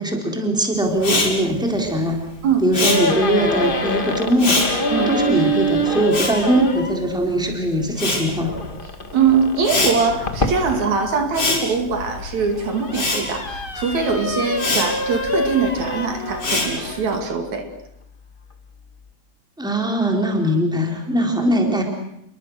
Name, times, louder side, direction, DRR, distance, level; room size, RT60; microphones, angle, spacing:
voice 1, 0.0-2.2 2.6-4.6 5.1-8.5 19.6-21.8, right 1 dB, ahead, 2 dB, 3.8 m, -21 dB
Respiratory sounds, 1.0-7.4 7.7-17.2, left 2 dB, 55° left, 6.2 m, -26 dB
sound 1, 2.8-7.0 8.4-11.6 12.2-17.2, equal, 25° left, 1.3 m, -26 dB
voice 2, 9.1-17.7, right 5 dB, 75° right, 5 dB, 3.8 m, -22 dB
28.0 x 22.5 x 6.5 m, 0.79 s
omnidirectional pair, 3.3 m